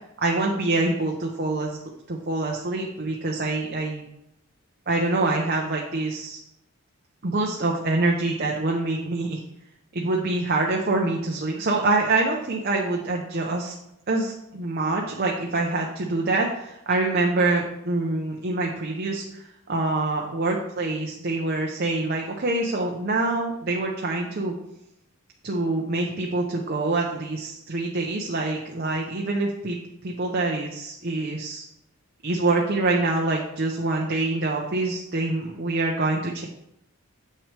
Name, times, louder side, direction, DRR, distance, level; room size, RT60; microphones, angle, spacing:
voice 1, 0.2-1.8 2.1-4.0 4.9-6.4 7.2-9.4 9.9-13.7 14.1-24.5 25.4-29.8 30.0-31.6 32.2-36.5, right 2 dB, 45° right, 0 dB, 0.8 m, -25 dB
7.8 x 6.1 x 3.3 m, 0.81 s
head